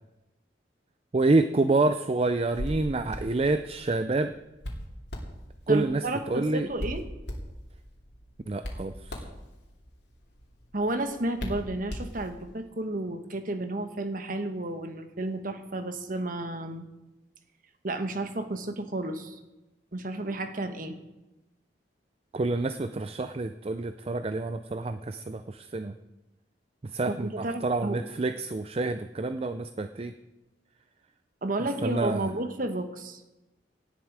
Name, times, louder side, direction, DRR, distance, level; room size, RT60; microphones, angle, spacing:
voice 1, 1.1-4.3 5.7-6.7 8.5-9.2 22.3-25.9 26.8-30.1 31.8-32.3, right 2 dB, 30° right, 10 dB, 0.4 m, -28 dB
Hands, 2.3-12.6, equal, 65° left, 2.8 m, -40 dB
voice 2, 5.7-7.0 10.7-16.8 17.8-19.4 19.9-21.0 27.1-28.0 31.4-33.2, right 2 dB, 50° right, 8 dB, 1.2 m, -32 dB
18.0 x 10.5 x 4.8 m, 1.1 s
head